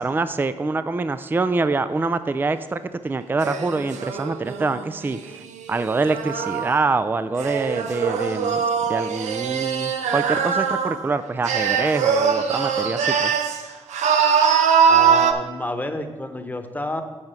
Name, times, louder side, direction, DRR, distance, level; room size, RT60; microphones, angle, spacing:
voice 1, 0.0-5.4 5.7-13.3, right 3 dB, 15° right, 13 dB, 0.4 m, -25 dB
sound 1, 3.4-6.8 7.4-11.1 11.5-13.6 13.9-15.3, right 7 dB, 80° right, 0.6 m, -22 dB
voice 2, 14.9-17.0, left 1 dB, 15° left, 6 dB, 1.0 m, -29 dB
7.5 x 4.6 x 6.6 m, 1.2 s
supercardioid pair, 55°, 12 cm